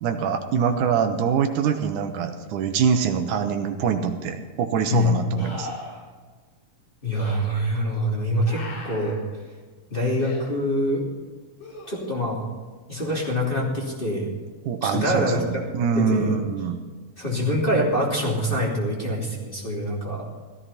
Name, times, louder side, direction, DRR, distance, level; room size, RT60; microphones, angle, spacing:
voice 1, 0.0-5.7 14.7-16.8, right 7 dB, 85° right, 6 dB, 2.5 m, -24 dB
sound 1, 3.8-3.9 5.4-6.0 7.1-7.4 8.4-9.2 10.2-10.4 11.6-12.3 15.4-15.5, left 2 dB, 85° left, 4.9 m, -38 dB
voice 2, 7.0-9.2 9.9-11.0 11.9-12.4 12.9-14.3 14.8-15.7 16.0-16.4 17.2-20.3, equal, 15° left, -3 dB, 2.9 m, -25 dB
16.0 x 14.0 x 4.3 m, 1.4 s
omnidirectional pair, 3.5 m